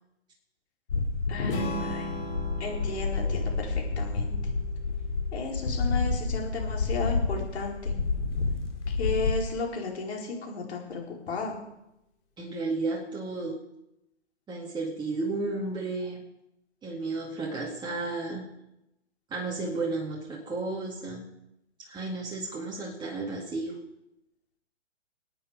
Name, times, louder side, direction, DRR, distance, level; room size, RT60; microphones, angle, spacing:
sound 1, 0.9-9.3, left 4 dB, 80° left, 3.6 m, -29 dB
voice 1, 1.3-2.2 2.6-4.3 5.3-7.9 8.9-11.5, left 4 dB, 65° left, -1 dB, 4.7 m, -34 dB
Strum, 1.5-5.7, equal, 50° left, 6.9 m, -39 dB
voice 2, 12.4-13.6 14.5-16.2 16.8-18.4 19.3-21.3 21.8-23.8, right 3 dB, 10° right, -3 dB, 2.1 m, -33 dB
19.5 x 9.0 x 5.1 m, 0.88 s
hypercardioid pair, 130°, 35 cm